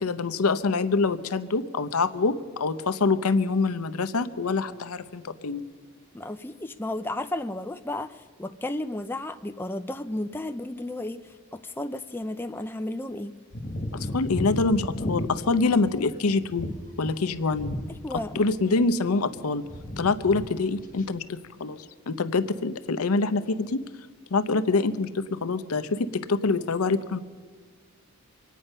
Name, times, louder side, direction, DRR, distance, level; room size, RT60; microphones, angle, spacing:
voice 1, 0.0-5.6 13.9-16.7 17.0-17.7 18.3-19.6 20.0-23.8 24.3-27.2, left 3 dB, 85° left, 12 dB, 0.7 m, -25 dB
voice 2, 6.1-11.2 11.5-13.3 18.0-18.4, left 1 dB, 10° left, 7 dB, 0.4 m, -33 dB
sound 1, 13.5-18.5 18.7-19.4 19.7-20.5 20.7-21.1, left 1 dB, 35° left, 1.3 m, -34 dB
25.0 x 9.3 x 5.5 m, 1.5 s
head